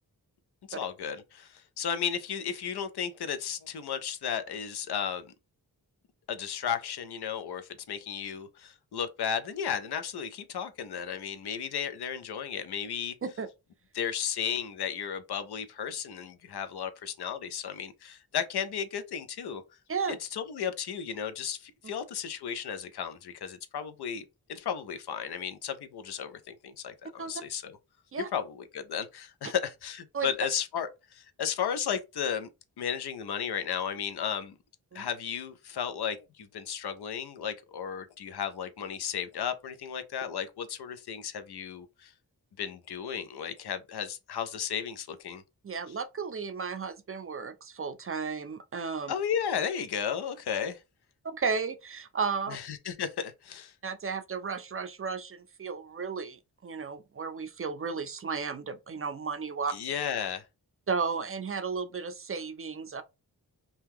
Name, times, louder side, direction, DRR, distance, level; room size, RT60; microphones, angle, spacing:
voice 1, 0.7-5.3 6.3-13.1 13.9-19.6 20.1-27.8 28.2-32.5 32.8-34.6 34.9-42.1 42.6-45.4 49.1-50.8 52.5-53.7 59.7-60.4, left 8 dB, 75° left, 0.6 m, -34 dB
voice 2, 45.6-49.1 51.2-52.6 53.8-59.7 60.9-63.0, right 5 dB, 35° right, 0.4 m, -34 dB
2.8 x 2.2 x 3.4 m
cardioid pair, 60°, 39 cm